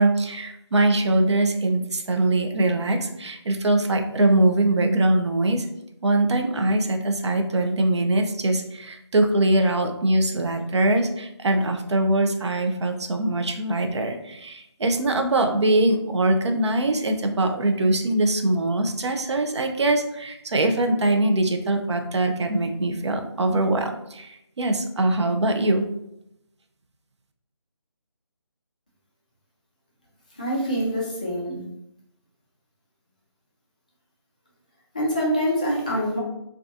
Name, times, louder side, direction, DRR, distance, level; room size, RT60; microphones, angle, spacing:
voice 1, 0.0-5.7 6.0-25.9, right 2 dB, 70° right, 5 dB, 0.4 m, -22 dB
voice 2, 30.4-31.6 34.9-36.2, equal, 15° left, -4 dB, 0.3 m, -25 dB
2.6 x 2.3 x 2.4 m, 0.82 s
figure-of-eight pair, 155°, 15 cm